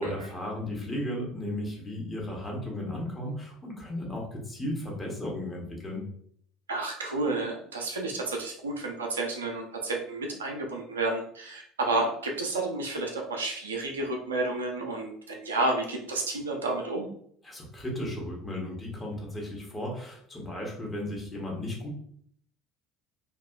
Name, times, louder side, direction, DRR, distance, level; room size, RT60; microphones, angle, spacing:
voice 1, 0.0-6.0 17.4-22.0, left 1 dB, 15° left, -2 dB, 0.9 m, -35 dB
voice 2, 6.7-17.1, right 2 dB, 75° right, 1 dB, 0.4 m, -31 dB
2.7 x 2.3 x 2.3 m, 0.63 s
figure-of-eight pair, 65°, 0 cm